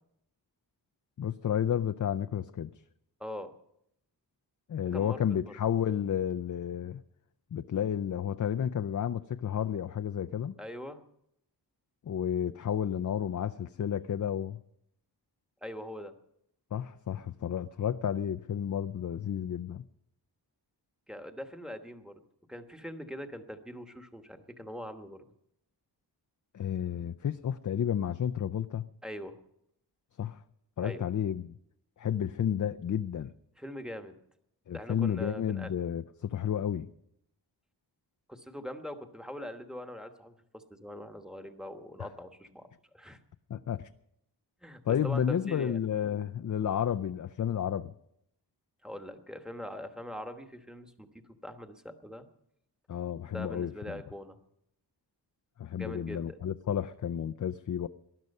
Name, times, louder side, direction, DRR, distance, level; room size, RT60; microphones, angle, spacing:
voice 1, 1.2-2.7 4.7-7.0 7.5-10.5 12.1-14.6 16.7-19.8 26.5-28.9 30.2-30.4 30.8-31.5 32.0-33.3 34.7-36.9 43.5-43.9 44.9-47.9 52.9-53.7 55.6-57.9, left 9 dB, 45° left, 10 dB, 0.5 m, -31 dB
voice 2, 3.2-3.5 4.9-5.6 10.6-11.0 15.6-16.1 21.1-22.1 22.5-25.2 29.0-29.4 30.8-31.0 33.6-34.2 34.7-35.7 38.3-42.7 42.9-43.2 44.6-45.8 48.8-51.1 51.4-52.3 53.3-54.4 55.8-56.4, equal, ahead, 6 dB, 1.2 m, -42 dB
19.0 x 12.0 x 5.4 m, 0.76 s
wide cardioid pair, 135°, 42 cm